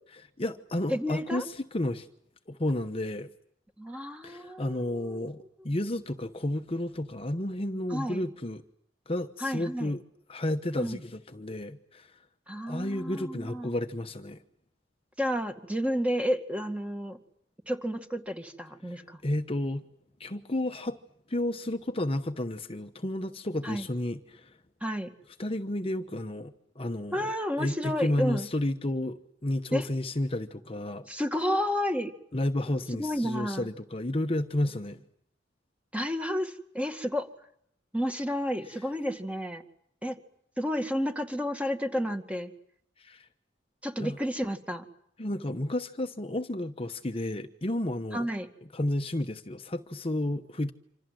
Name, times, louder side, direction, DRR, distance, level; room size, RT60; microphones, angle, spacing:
voice 1, 0.4-2.1 2.5-3.3 4.2-8.6 9.1-10.0 10.3-12.1 12.7-14.4 18.9-19.8 20.2-21.0 21.3-24.5 25.4-27.3 27.6-31.1 32.3-35.0 43.0-43.3 44.0-44.2 45.2-48.3 48.7-50.7, left 1 dB, 30° left, 7 dB, 1.0 m, -32 dB
voice 2, 0.9-1.4 3.8-5.3 7.9-8.2 9.4-9.9 10.8-11.0 12.5-13.7 15.2-17.2 17.7-19.2 23.6-23.9 24.8-25.1 27.1-28.5 29.7-29.8 31.1-32.1 33.0-33.7 35.9-37.3 37.9-39.6 40.0-40.2 40.6-42.5 43.8-44.8 48.1-48.5, equal, 5° right, 6 dB, 2.1 m, -31 dB
27.5 x 26.5 x 7.7 m, 0.70 s
head